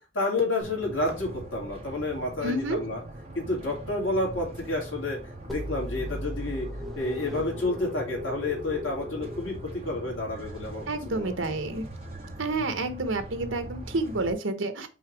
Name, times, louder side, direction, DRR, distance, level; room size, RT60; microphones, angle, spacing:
voice 1, 0.1-3.0 3.3-5.2 5.5-6.7 6.9-9.6 9.8-11.3, left 2 dB, 80° left, -1 dB, 2.7 m, -30 dB
sound 1, 0.6-14.3, right 1 dB, 30° right, 1.9 m, -42 dB
voice 2, 2.4-2.8 10.9-11.9 12.4-14.9, right 2 dB, 75° right, 9 dB, 1.0 m, -29 dB
sound 2, 5.5-10.2, left 1 dB, ahead, 1.1 m, -37 dB
5.5 x 3.8 x 4.7 m, 0.31 s
head